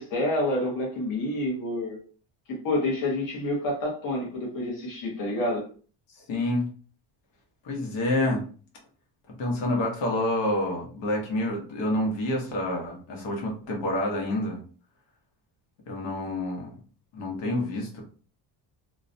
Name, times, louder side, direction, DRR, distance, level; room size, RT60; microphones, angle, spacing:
voice 1, 0.0-2.0 2.6-5.6, left 1 dB, 45° left, -2 dB, 0.8 m, -28 dB
voice 2, 6.3-6.7 7.6-8.4 9.4-14.6 15.9-16.7 17.1-18.0, left 1 dB, 70° left, 0 dB, 1.0 m, -28 dB
2.4 x 2.1 x 2.5 m, 0.40 s
cardioid pair, 180°, 47 cm